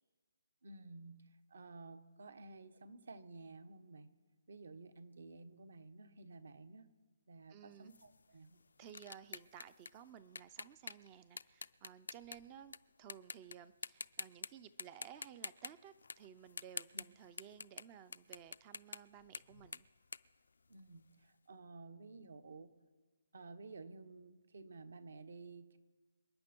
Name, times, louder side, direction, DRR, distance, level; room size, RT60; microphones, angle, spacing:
voice 1, 0.6-4.1 4.5-6.9 7.3-8.6 16.9-17.0 20.7-22.7 23.3-25.8, right 3 dB, 70° right, 11 dB, 1.2 m, -53 dB
voice 2, 7.5-7.9 8.8-12.7 13.0-19.9, right 9 dB, 20° right, 16 dB, 0.4 m, -56 dB
sound 1, 7.9-12.8 13.1-13.5 13.8-14.5 14.8-21.1, left 4 dB, 85° left, 0.4 m, -48 dB
27.0 x 9.4 x 4.5 m, 1.4 s
hypercardioid pair, 170°, 0 cm